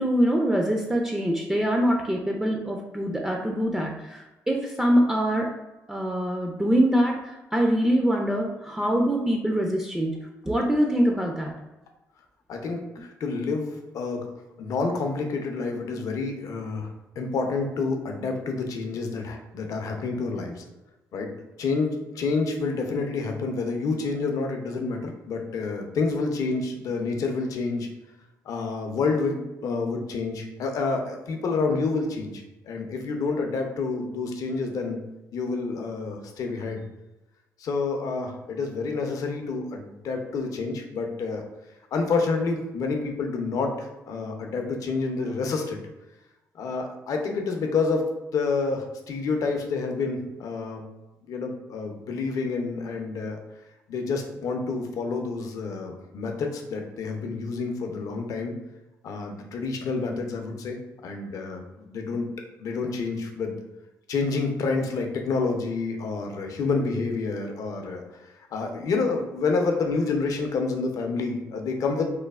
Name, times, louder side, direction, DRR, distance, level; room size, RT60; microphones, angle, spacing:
voice 1, 0.0-5.5 5.9-10.2 10.5-11.5, equal, 10° right, 1 dB, 0.3 m, -24 dB
voice 2, 12.5-14.3 14.6-16.9 17.2-20.6 21.1-21.3 21.6-27.9 28.5-35.0 35.3-36.8 37.6-41.4 41.9-45.8 46.5-50.8 51.3-53.4 53.9-58.5 59.0-60.8 61.0-62.3 62.6-63.6 64.1-68.0 68.5-72.1, left 4 dB, 70° left, 3 dB, 0.5 m, -28 dB
3.1 x 2.0 x 2.3 m, 1.0 s
cardioid pair, 80°, 6 cm